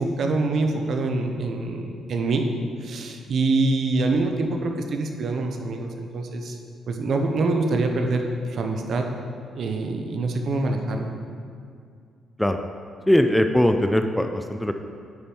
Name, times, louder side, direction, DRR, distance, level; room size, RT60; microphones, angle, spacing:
voice 1, 0.0-2.5 2.8-6.6 6.9-9.1 9.5-11.1, right 3 dB, 60° right, 4 dB, 0.9 m, -25 dB
voice 2, 13.1-14.7, left 1 dB, 5° left, 6 dB, 0.4 m, -20 dB
9.4 x 5.2 x 4.5 m, 2.3 s
cardioid pair, 90°, 0 cm